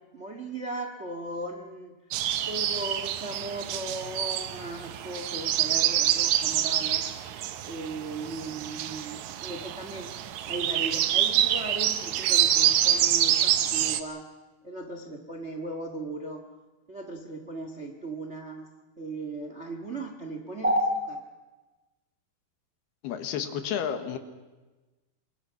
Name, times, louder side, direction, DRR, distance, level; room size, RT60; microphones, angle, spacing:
voice 1, 0.0-1.9 2.5-7.1 7.7-10.1 10.5-14.2 14.6-16.4 16.9-18.7 19.0-21.2, right 1 dB, 40° right, 4 dB, 0.9 m, -35 dB
sound 1, 2.1-14.0, right 11 dB, 85° right, 1.6 m, -26 dB
voice 2, 23.0-24.2, left 8 dB, 75° left, 8 dB, 3.5 m, -31 dB
27.0 x 22.5 x 5.9 m, 1.2 s
omnidirectional pair, 4.7 m